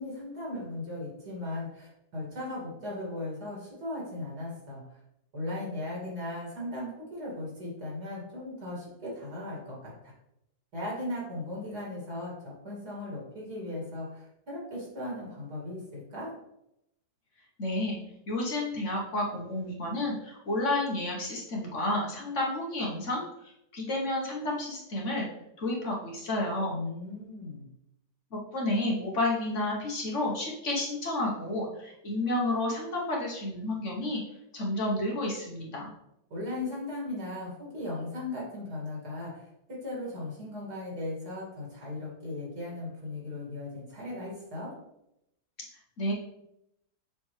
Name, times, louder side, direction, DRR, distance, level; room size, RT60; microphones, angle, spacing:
voice 1, 0.0-5.0 5.3-10.1 10.7-16.3 26.7-27.7 36.3-44.7, left 2 dB, 70° right, -5 dB, 3.1 m, -37 dB
voice 2, 17.6-18.0 18.3-25.3 25.6-26.8 28.3-34.2 34.5-35.9 46.0-46.1, left 1 dB, 50° left, -3 dB, 1.6 m, -31 dB
6.2 x 5.1 x 3.3 m, 0.81 s
omnidirectional pair, 1.7 m